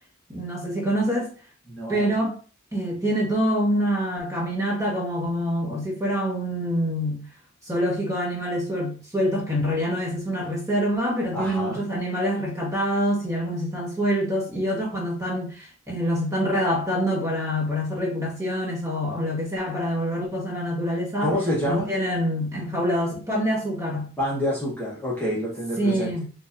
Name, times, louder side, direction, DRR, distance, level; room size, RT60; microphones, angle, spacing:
voice 1, 0.3-1.3 1.9-2.4 2.7-7.3 7.6-21.3 21.6-24.1 25.8-26.3, equal, 15° right, 1.2 m, -26 dB
voice 2, 1.7-2.1 11.3-11.9 21.2-21.9 24.2-26.1, equal, 10° left, 1.0 m, -27 dB
4.7 x 2.7 x 2.5 m
head